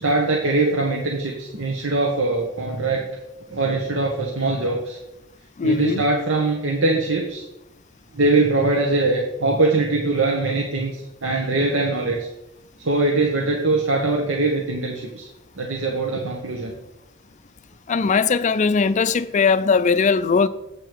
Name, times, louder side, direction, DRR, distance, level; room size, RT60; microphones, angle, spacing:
voice 1, 0.0-3.1 3.5-5.0 5.6-7.4 8.1-12.3 12.8-15.3 15.6-16.7, right 2 dB, 75° right, 1.2 m, -22 dB
voice 2, 5.6-6.0 17.9-20.5, left 5 dB, 40° left, 0.4 m, -19 dB
8.1 x 6.9 x 4.6 m
head